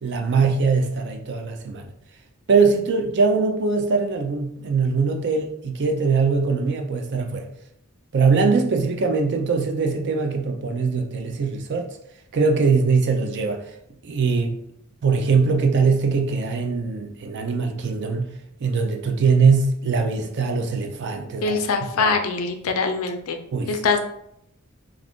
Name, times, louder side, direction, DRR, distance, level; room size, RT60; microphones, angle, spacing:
voice 1, 0.0-1.9 2.5-7.5 8.1-11.9 12.3-13.7 14.0-14.5 15.0-18.3 18.6-21.6 22.0-22.1 23.5-23.7, right 4 dB, 55° right, 4 dB, 0.4 m, -21 dB
voice 2, 21.4-23.4 23.7-24.0, left 4 dB, 70° left, 6 dB, 0.4 m, -23 dB
2.4 x 2.4 x 3.5 m, 0.75 s
head